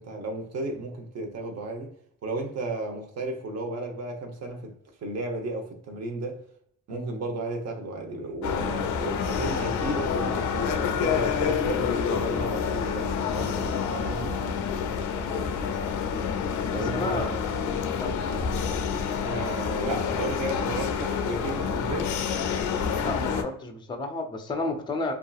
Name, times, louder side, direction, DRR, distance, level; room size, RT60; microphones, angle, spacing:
voice 1, 0.0-1.9 2.2-4.7 5.0-6.4 6.9-14.4 16.7-17.4 19.2-22.2, right 2 dB, 60° right, 0.8 m, -34 dB
sound 1, 8.4-23.4, left 6 dB, 75° left, 0.5 m, -28 dB
voice 2, 15.1-15.5 16.7-17.3 18.0-18.2 23.0-25.1, left 2 dB, 15° left, 0.4 m, -32 dB
2.7 x 2.4 x 2.3 m
cardioid pair, 90°, 30 cm